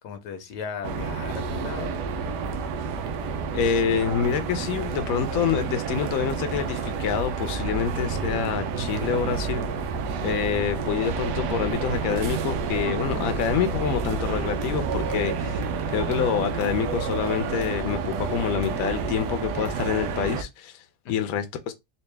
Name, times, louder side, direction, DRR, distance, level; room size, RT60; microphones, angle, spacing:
voice 1, 0.0-2.0 21.0-21.4, left 6 dB, 85° left, 1.4 m, -36 dB
sound 1, 0.8-20.4, right 5 dB, 90° right, 1.3 m, -29 dB
voice 2, 3.5-9.6 10.2-21.7, left 7 dB, 65° left, 1.0 m, -27 dB
sound 2, 9.3-15.8, right 3 dB, 75° right, 1.0 m, -40 dB
4.1 x 2.5 x 3.3 m
omnidirectional pair, 1.7 m